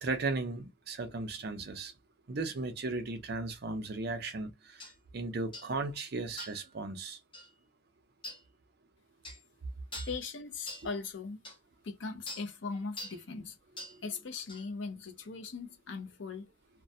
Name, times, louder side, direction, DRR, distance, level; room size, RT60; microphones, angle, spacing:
voice 1, 0.0-1.9 2.3-4.8 5.1-7.2, right 3 dB, 55° right, 0.5 m, -36 dB
sound 1, 4.8-4.9 5.5-5.7 6.4-6.7 7.3-7.5 8.2-8.4 9.2-9.4 9.9-10.2 10.7-10.9 11.4-11.6 12.3-12.5 13.0-13.2 13.8-14.0 14.5-14.6, left 1 dB, 25° left, 0.7 m, -44 dB
voice 2, 10.1-11.4 11.8-13.6 14.0-16.5, left 4 dB, 65° left, 0.6 m, -39 dB
2.3 x 2.2 x 2.6 m
head